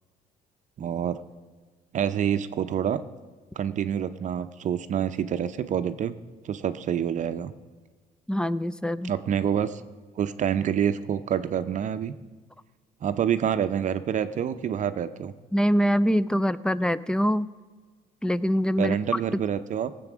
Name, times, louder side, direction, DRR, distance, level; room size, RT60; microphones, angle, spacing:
voice 1, 0.8-1.2 1.9-3.0 3.6-6.2 6.4-7.5 9.1-9.8 10.2-12.1 13.0-15.3 18.8-19.9, right 9 dB, 45° right, 10 dB, 0.6 m, -27 dB
voice 2, 8.3-9.1 15.5-17.5 18.2-19.4, equal, 5° left, 17 dB, 0.4 m, -24 dB
17.5 x 7.7 x 6.1 m, 1.4 s
cardioid pair, 110°, 17 cm